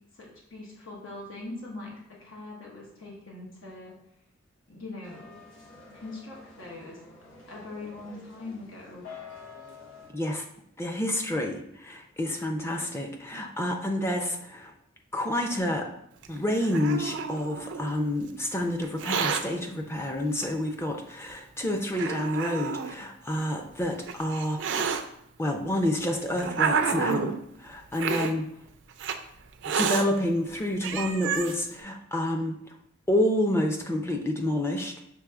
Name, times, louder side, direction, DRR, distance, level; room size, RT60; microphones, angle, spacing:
voice 1, 0.1-3.9 4.7-5.3 5.9-7.0 7.5-9.1, left 2 dB, 90° left, -3 dB, 1.2 m, -42 dB
sound 1, 5.0-10.1, left 4 dB, 75° left, 1.4 m, -48 dB
voice 2, 10.1-10.4 10.8-14.7 15.1-15.9 16.3-24.6 25.4-27.3 27.6-28.5 29.8-32.6 33.1-34.9, left 1 dB, 15° left, 3 dB, 0.4 m, -28 dB
Hiss, 16.2-17.9 18.8-19.4 20.4-20.5 21.3-21.4 21.9-22.9 23.8-25.0 25.9-27.4 27.9-28.3 29.0-29.2 29.6-30.1 30.5-30.6 30.8-31.5, right 6 dB, 65° right, 0.4 m, -29 dB
6.1 x 3.1 x 2.3 m, 0.77 s
head